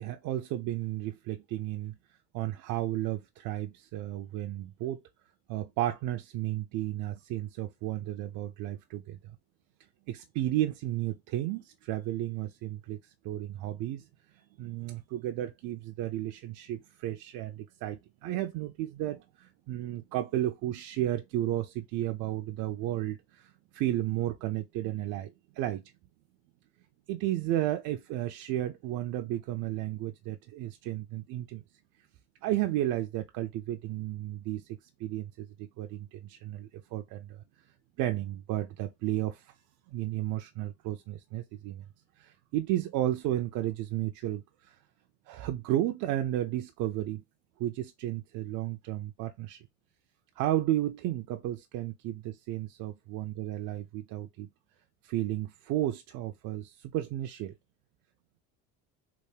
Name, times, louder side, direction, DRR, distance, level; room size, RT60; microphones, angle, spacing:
voice 1, 0.0-2.0 2.3-5.0 5.5-9.2 10.1-14.1 14.6-25.8 27.1-31.6 32.4-37.4 38.0-39.5 39.9-41.8 42.2-44.8 45.3-47.2 47.6-49.7 50.4-54.5 55.0-57.5, right 13 dB, 65° right, 0.4 m, -33 dB
3.4 x 2.5 x 3.2 m
cardioid pair, 120°, 34 cm